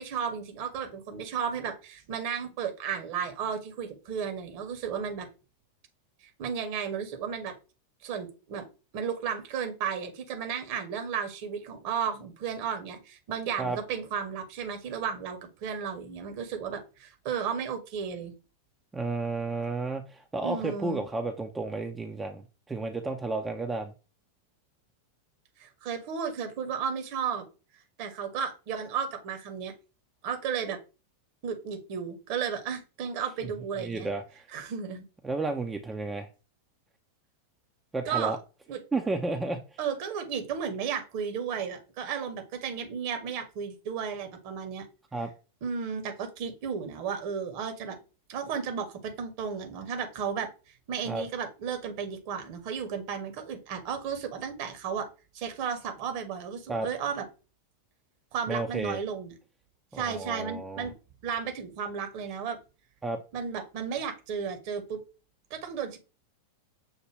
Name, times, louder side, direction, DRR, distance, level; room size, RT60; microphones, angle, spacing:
voice 1, 0.0-5.3 6.2-7.5 8.0-8.7 8.9-18.3 20.4-21.0 25.6-27.4 28.0-29.7 30.2-30.8 31.4-34.1 34.5-35.0 38.0-38.4 38.7-38.8 39.8-44.9 45.6-48.0 48.3-50.5 50.9-55.1 55.3-57.3 58.3-59.3 59.9-60.9 61.2-62.6 63.3-65.0 65.5-66.0, right 7 dB, 45° right, 6 dB, 0.9 m, -34 dB
voice 2, 18.9-22.4 22.7-23.9 33.8-34.2 35.2-36.3 37.9-38.4 38.9-39.6 45.1-45.3 51.1-51.2 56.7-56.9 58.5-59.0 59.9-60.9 63.0-63.2, right 3 dB, 10° right, 4 dB, 0.4 m, -32 dB
6.4 x 2.1 x 3.2 m, 0.32 s
figure-of-eight pair, 90°, 0 cm